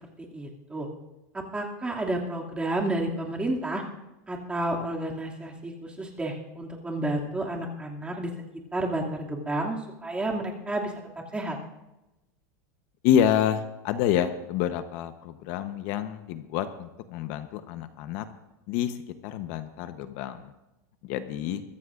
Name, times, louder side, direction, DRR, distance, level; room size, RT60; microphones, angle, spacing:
voice 1, 0.3-0.9 1.3-3.8 4.3-8.3 8.7-9.8 10.0-10.9 11.3-11.6, right 1 dB, 10° right, -1 dB, 2.5 m, -30 dB
voice 2, 13.0-18.3 18.7-20.5 21.0-21.6, left 10 dB, 55° left, 9 dB, 1.0 m, -28 dB
22.5 x 14.5 x 2.6 m, 0.97 s
supercardioid pair, 140°, 10 cm